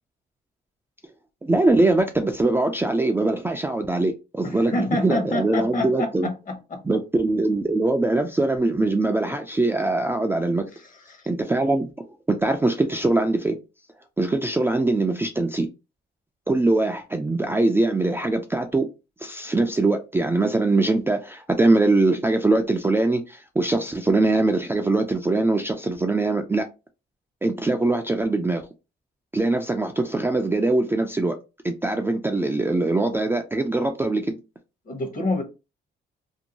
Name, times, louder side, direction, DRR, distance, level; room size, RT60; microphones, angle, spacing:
voice 1, 1.4-6.3 6.9-10.7 11.3-13.6 14.2-15.7 16.5-18.9 19.2-26.7 27.4-28.6 29.3-31.4 31.6-34.4, right 2 dB, 10° right, 0.3 m, -22 dB
voice 2, 4.4-6.8 10.8-11.2 34.9-35.4, left 2 dB, 40° left, 0.9 m, -28 dB
2.6 x 2.1 x 2.8 m
cardioid pair, 90°, 20 cm